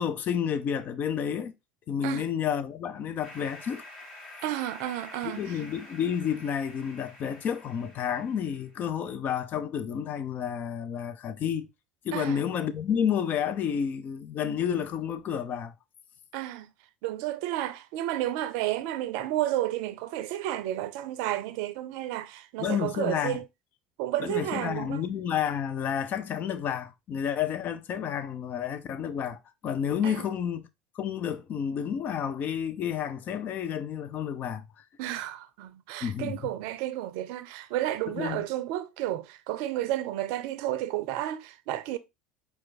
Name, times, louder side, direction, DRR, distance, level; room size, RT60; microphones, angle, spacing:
voice 1, 0.0-1.5 1.9-3.8 5.2-11.7 12.0-15.7 22.6-23.4 24.2-30.7 30.9-34.7 36.0-36.4 38.1-38.4, left 8 dB, 45° left, 0.6 m, -30 dB
sound 1, 3.2-8.8, left 1 dB, 30° left, 3.0 m, -48 dB
voice 2, 4.4-5.6 12.1-12.4 16.3-16.7 17.0-23.4 24.0-25.0 30.0-30.1 35.0-42.0, right 14 dB, 65° right, 0.5 m, -31 dB
4.5 x 2.4 x 3.9 m
hypercardioid pair, 70°, 4 cm